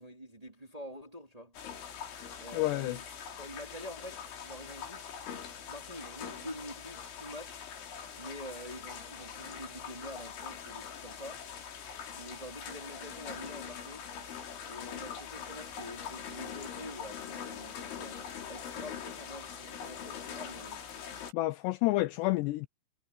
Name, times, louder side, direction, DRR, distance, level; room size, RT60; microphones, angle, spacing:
voice 1, 0.0-1.6 2.4-3.0 3.3-5.2 5.7-7.6 8.1-11.4 12.1-14.1 14.7-18.2 18.5-20.8, equal, 10° right, 2.5 m, -46 dB
sound 1, 1.5-21.3, left 7 dB, 70° left, 5.9 m, -43 dB
voice 2, 2.5-3.0 21.3-22.7, left 19 dB, 85° left, 2.5 m, -29 dB
omnidirectional pair, 5.5 m